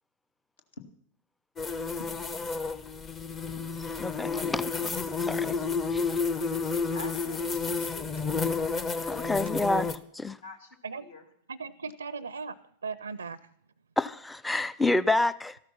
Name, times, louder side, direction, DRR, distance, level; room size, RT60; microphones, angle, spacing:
sound 1, 1.6-10.0, left 4 dB, 20° left, 0.9 m, -31 dB
voice 1, 4.0-5.6 5.9-6.2 9.1-9.9 10.1-10.4 14.0-15.6, left 2 dB, 5° left, 18 dB, 0.5 m, -29 dB
voice 2, 6.9-8.7 10.4-10.7 11.0-11.2, left 3 dB, 65° left, 6 dB, 2.2 m, -45 dB
voice 3, 11.5-12.6 12.8-13.5, right 5 dB, 75° right, 19 dB, 0.5 m, -37 dB
14.0 x 12.5 x 5.8 m, 0.68 s
figure-of-eight pair, 90°, 0 cm